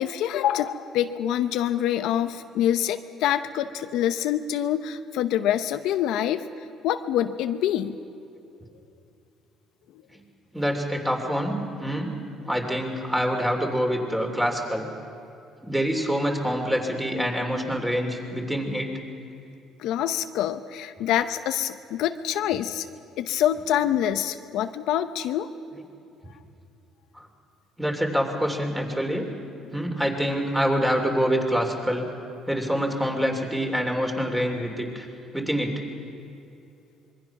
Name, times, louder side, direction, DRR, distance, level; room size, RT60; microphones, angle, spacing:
voice 1, 0.0-6.5 6.8-8.0 19.8-22.9 23.2-25.5, left 11 dB, 80° left, 9 dB, 0.8 m, -26 dB
voice 2, 10.5-14.9 15.6-19.0 27.1-27.3 27.8-29.3 29.7-32.1 32.5-35.1 35.3-35.8, equal, 5° right, 2 dB, 3.2 m, -26 dB
25.5 x 22.0 x 6.0 m, 2.7 s
cardioid pair, 120°, 0 cm